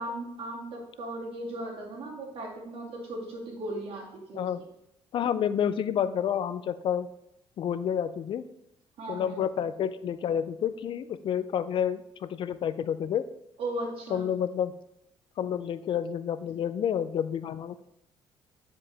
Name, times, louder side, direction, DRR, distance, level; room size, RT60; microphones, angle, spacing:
voice 1, 0.0-4.4 9.0-9.4 13.6-14.3, right 1 dB, 65° right, -1 dB, 2.2 m, -37 dB
voice 2, 5.1-7.1 7.6-8.4 9.1-13.2 14.1-14.7 15.4-17.8, left 9 dB, 55° left, 13 dB, 0.4 m, -29 dB
9.7 x 4.9 x 3.3 m, 0.81 s
cardioid pair, 105°, 11 cm